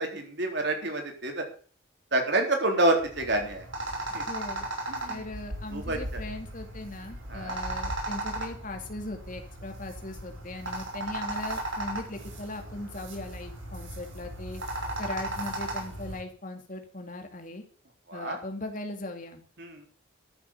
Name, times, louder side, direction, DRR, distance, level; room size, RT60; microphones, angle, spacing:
voice 1, 0.0-1.5 2.1-3.7 4.1-4.2 4.9-5.2 5.7-6.2 7.3-7.6 18.1-18.4 19.6-19.8, right 2 dB, 55° right, 3 dB, 3.8 m, -28 dB
sound 1, 3.0-16.2, right 1 dB, 75° right, 6.1 m, -36 dB
voice 2, 4.3-4.7 5.1-14.6 15.0-17.6 18.1-19.4, left 2 dB, 40° left, 4 dB, 2.6 m, -39 dB
13.5 x 7.8 x 8.4 m, 0.43 s
head